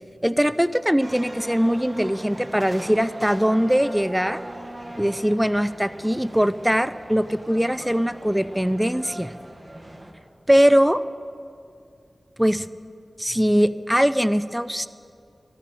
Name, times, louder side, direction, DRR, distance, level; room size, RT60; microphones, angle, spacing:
voice 1, 0.2-4.4 5.0-9.3 10.5-11.0 12.4-12.7 13.2-14.9, equal, 5° right, 15 dB, 0.4 m, -21 dB
sound 1, 1.0-10.1, right 1 dB, 25° right, 1.6 m, -40 dB
13.5 x 13.0 x 5.0 m, 2.4 s
cardioid pair, 40°, 0 cm